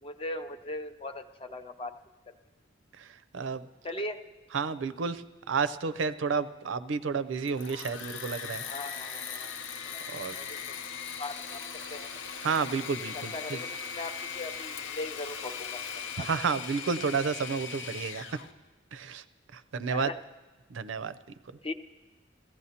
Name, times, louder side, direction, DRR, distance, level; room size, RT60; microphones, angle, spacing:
voice 1, 0.0-1.9 2.3-2.4 3.8-4.2 8.6-9.5 9.8-10.0 10.3-10.7 11.2-11.6 11.9-12.1 13.1-16.3 19.9-20.2 21.6-21.7, left 2 dB, 30° left, 7 dB, 0.5 m, -39 dB
voice 2, 4.5-5.2 5.5-8.6 10.1-10.3 12.4-13.6 16.2-18.2 18.9-19.2 19.5-20.1 20.7-21.1, right 5 dB, 80° right, 12 dB, 0.5 m, -31 dB
Engine / Mechanisms, 7.3-18.5, left 6 dB, 80° left, 0.7 m, -39 dB
21.0 x 15.0 x 2.8 m, 1.2 s
head